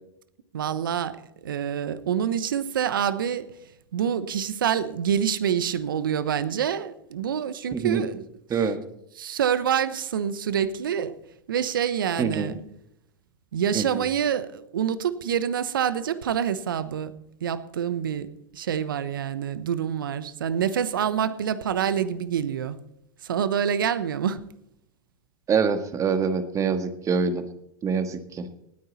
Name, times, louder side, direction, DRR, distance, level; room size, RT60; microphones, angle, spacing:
voice 1, 0.5-1.2 1.4-3.5 3.9-8.2 9.2-11.2 11.5-12.6 13.5-17.1 17.4-18.3 18.5-22.8 23.2-24.4, right 8 dB, 80° right, 15 dB, 1.0 m, -26 dB
voice 2, 7.7-8.0 8.5-8.8 12.2-12.5 13.7-14.0 25.5-27.4 27.8-28.5, right 5 dB, 30° right, 9 dB, 1.7 m, -25 dB
18.5 x 9.5 x 4.2 m, 0.79 s
hypercardioid pair, 95°, 11 cm